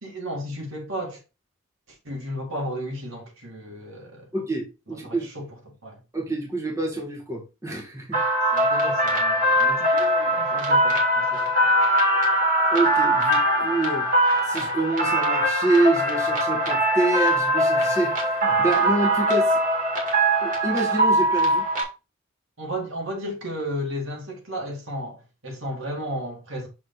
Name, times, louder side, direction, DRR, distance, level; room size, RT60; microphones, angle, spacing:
voice 1, 0.0-1.2 1.9-4.3 5.0-6.0 8.5-11.5 22.6-26.7, equal, 65° right, 2.2 m, -34 dB
voice 2, 4.3-5.3 6.1-8.2 12.7-14.1 14.4-19.6 20.4-21.6, right 2 dB, 15° right, 1.6 m, -26 dB
sound 1, 8.1-21.8, right 1 dB, 40° right, 2.1 m, -21 dB
6.3 x 3.8 x 3.9 m
head